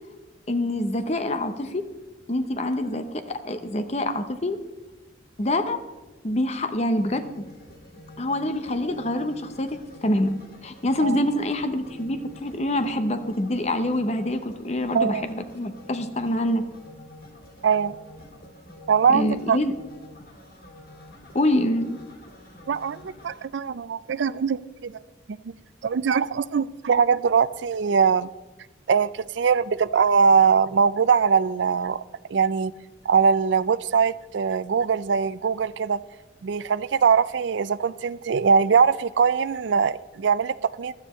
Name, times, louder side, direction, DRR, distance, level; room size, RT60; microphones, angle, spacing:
voice 1, 0.5-1.9 2.3-4.6 5.4-5.8 6.2-7.5 8.2-10.3 10.6-16.6 19.1-19.7 21.3-22.0, left 1 dB, 35° left, 0.7 m, -26 dB
sound 1, 6.9-23.5, left 1 dB, 50° left, 2.0 m, -47 dB
voice 2, 14.9-15.3 17.6-18.0 18.9-19.6 22.7-25.0 25.3-25.5 25.8-28.3 28.9-32.0 32.3-32.7 33.1-36.0 36.4-40.9, right 6 dB, 70° right, 0.4 m, -22 dB
16.0 x 12.0 x 3.1 m
head